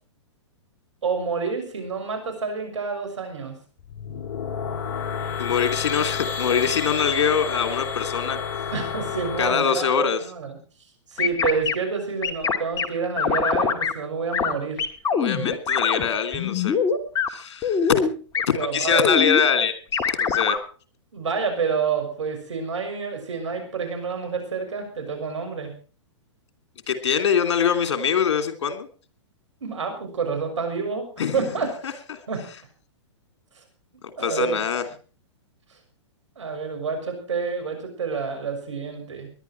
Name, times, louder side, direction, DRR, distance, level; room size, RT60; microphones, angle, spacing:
voice 1, 1.0-3.6 8.7-10.6 11.1-14.9 18.5-19.2 21.1-25.7 29.6-32.0 32.3-32.5 33.5-33.6 34.2-34.6 36.4-39.3, right 5 dB, 80° right, 6 dB, 6.4 m, -28 dB
sound 1, 3.8-9.5, left 6 dB, 45° left, 2.7 m, -30 dB
voice 2, 5.4-8.4 9.4-10.2 15.1-16.8 17.3-18.0 18.5-19.8 20.2-20.6 26.9-28.9 31.2-31.5 31.8-32.2 34.2-34.8, left 7 dB, 65° left, 8 dB, 3.0 m, -23 dB
sound 2, 11.2-11.7 12.2-12.9 13.2-13.9 14.3-14.5 14.8-16.0 16.3-17.3 17.6-18.1 18.3-18.4 18.9-19.4 19.9-20.6, left 6 dB, 25° left, 2.0 m, -23 dB
20.0 x 11.5 x 4.6 m, 0.39 s
hypercardioid pair, 120°, 15 cm